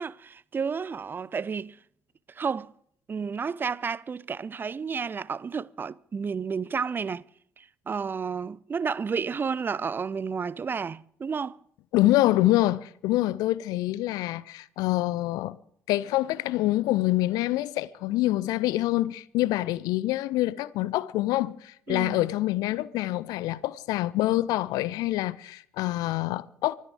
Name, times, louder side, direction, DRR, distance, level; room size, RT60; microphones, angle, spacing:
voice 1, 0.0-1.8 2.3-2.7 3.1-7.2 7.6-11.6 21.9-22.2, right 5 dB, 30° right, 0.5 m, -31 dB
voice 2, 11.9-15.6 15.9-26.7, left 16 dB, 60° left, 0.6 m, -26 dB
24.5 x 9.3 x 5.0 m
figure-of-eight pair, 50°, 7 cm